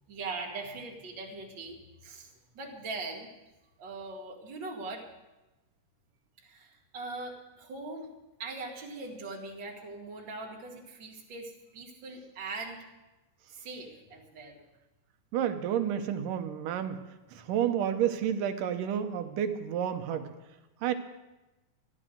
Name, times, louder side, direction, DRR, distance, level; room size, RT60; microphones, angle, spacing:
voice 1, 0.1-3.3 3.8-5.0 6.4-8.1 8.4-12.8 13.6-14.6, right 3 dB, 40° right, -1 dB, 2.4 m, -41 dB
voice 2, 15.3-17.0 17.3-20.3 20.8-20.9, right 9 dB, 80° right, 8 dB, 2.5 m, -30 dB
14.0 x 11.0 x 6.5 m, 1.0 s
omnidirectional pair, 3.8 m